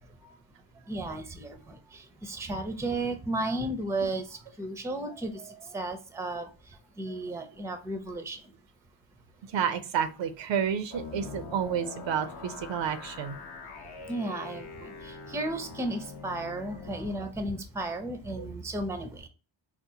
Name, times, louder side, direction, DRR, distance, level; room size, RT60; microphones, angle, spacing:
voice 1, 0.9-6.5 7.0-8.4 14.1-19.3, right 2 dB, 5° right, 7 dB, 0.5 m, -34 dB
voice 2, 9.5-13.3 18.4-18.5, right 8 dB, 70° right, 10 dB, 0.6 m, -30 dB
sound 1, 10.9-17.2, left 4 dB, 55° left, 0.9 m, -43 dB
4.3 x 2.0 x 2.7 m, 0.35 s
cardioid pair, 75°, 47 cm